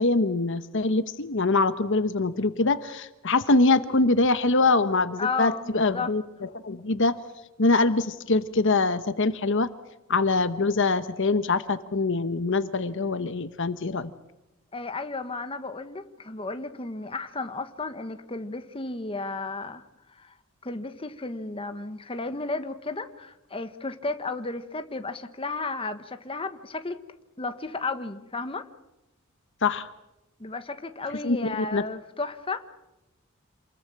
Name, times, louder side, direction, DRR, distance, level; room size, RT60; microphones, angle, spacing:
voice 1, 0.0-6.2 6.6-7.1 7.6-9.7 10.1-14.1 29.6-29.9 31.2-31.8, left 3 dB, 60° left, 12 dB, 1.1 m, -24 dB
voice 2, 5.2-6.1 14.7-20.3 20.6-27.0 27.4-28.7 30.4-32.7, left 3 dB, 25° left, 9 dB, 1.3 m, -33 dB
28.0 x 21.0 x 7.4 m, 0.97 s
head